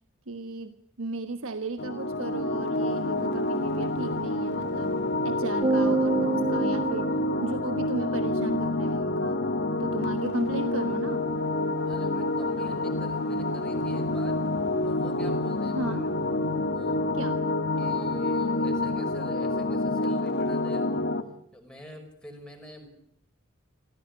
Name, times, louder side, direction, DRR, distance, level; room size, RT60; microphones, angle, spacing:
voice 1, 0.3-7.1 7.4-9.4 9.8-11.3 15.7-16.1 17.2-17.4, right 3 dB, 70° right, 9 dB, 1.3 m, -35 dB
sound 1, 1.8-21.2, left 2 dB, 55° left, 2.2 m, -28 dB
sound 2, 5.6-8.1, right 3 dB, 25° right, 1.3 m, -28 dB
voice 2, 11.8-14.5 14.8-16.0 16.7-17.0 17.8-21.1 21.5-22.9, left 1 dB, 5° left, 3 dB, 5.5 m, -47 dB
27.0 x 16.0 x 9.8 m, 0.71 s
head